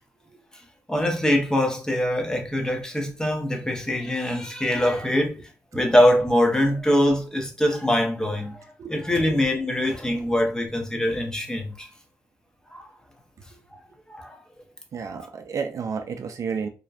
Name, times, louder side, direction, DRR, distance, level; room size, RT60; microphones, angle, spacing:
voice 1, 0.9-5.4 5.7-8.6 8.9-11.9 12.7-12.9 14.1-14.4, left 1 dB, 10° left, 0.7 m, -23 dB
voice 2, 14.9-16.7, right 5 dB, 65° right, 0.4 m, -31 dB
2.6 x 2.1 x 2.3 m
cardioid pair, 75°, 6 cm